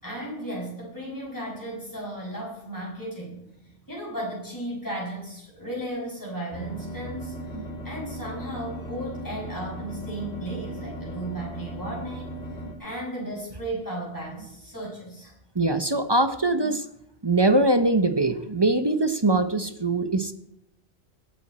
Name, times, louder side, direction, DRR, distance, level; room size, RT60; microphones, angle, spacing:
voice 1, 0.0-15.3, right 1 dB, 15° left, -4 dB, 6.6 m, -35 dB
sound 1, 6.5-12.7, right 1 dB, 60° left, 2.9 m, -37 dB
voice 2, 15.5-16.9 17.2-20.3, right 2 dB, 25° right, 9 dB, 0.8 m, -22 dB
22.5 x 8.7 x 4.3 m, 0.78 s
omnidirectional pair, 1.2 m